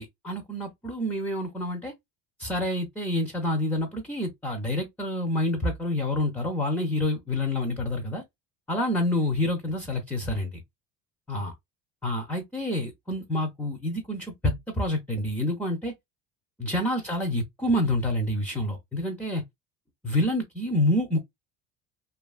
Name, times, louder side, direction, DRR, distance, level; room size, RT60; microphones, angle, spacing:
voice 1, 0.0-1.9 2.4-8.2 8.7-10.6 11.3-11.5 12.0-15.9 16.6-19.4 20.0-21.2, left 1 dB, 5° left, 0.3 m, -28 dB
2.6 x 2.4 x 2.3 m
cardioid pair, 120°, 37 cm